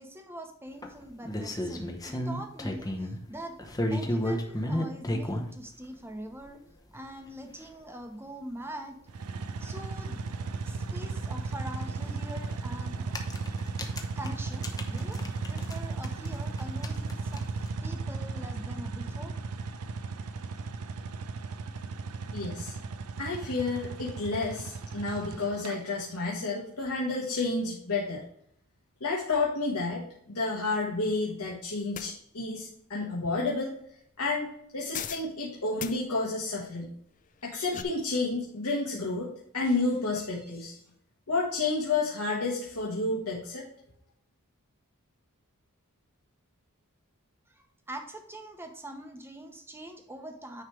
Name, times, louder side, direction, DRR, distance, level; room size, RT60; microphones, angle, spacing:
voice 1, 0.0-3.6 3.9-6.6 6.9-9.0 9.6-10.2 10.6-13.2 14.1-19.4 47.5-50.6, right 1 dB, 10° right, 5 dB, 0.9 m, -43 dB
sound 1, 0.8-3.2 3.6-5.5 6.4-6.5 6.9-7.0 7.3-7.4 7.6-7.7 9.7-9.8 10.0-10.1 12.1-12.3 12.9-15.8 16.0-17.7, left 1 dB, 15° left, 0.8 m, -33 dB
sound 2, 9.1-25.8, right 4 dB, 85° right, 0.5 m, -36 dB
voice 2, 22.3-22.7 23.2-28.2 29.0-33.8 34.2-34.5 34.7-36.9 37.4-40.8 41.3-43.7, left 3 dB, 90° left, -4 dB, 1.3 m, -30 dB
sound 3, 31.9-32.1 34.9-35.3 35.8-36.0 37.4-37.8, left 9 dB, 35° left, 0.4 m, -37 dB
9.6 x 3.2 x 4.6 m, 0.70 s
head